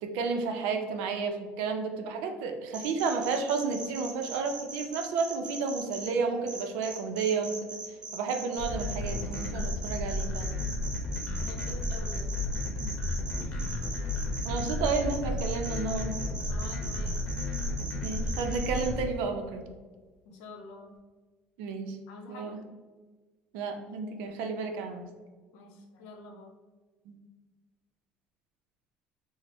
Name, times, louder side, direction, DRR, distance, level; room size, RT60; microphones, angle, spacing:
voice 1, 0.0-7.6 8.1-10.6 12.8-12.9 14.4-16.2 18.0-19.6 21.6-22.0 22.3-22.6 23.5-25.0 27.1-27.2, right 5 dB, 85° right, 5 dB, 0.5 m, -31 dB
sound 1, 2.7-6.1 6.5-18.9, right 3 dB, 25° right, 0.6 m, -40 dB
sound 2, 8.6-19.0, left 2 dB, 40° left, 0.8 m, -33 dB
voice 2, 11.4-12.3 13.4-13.7 16.4-17.3 20.2-20.9 22.1-22.6 25.5-26.5, left 3 dB, 90° left, 3 dB, 0.6 m, -47 dB
4.3 x 2.0 x 3.0 m, 1.3 s
cardioid pair, 145°, 3 cm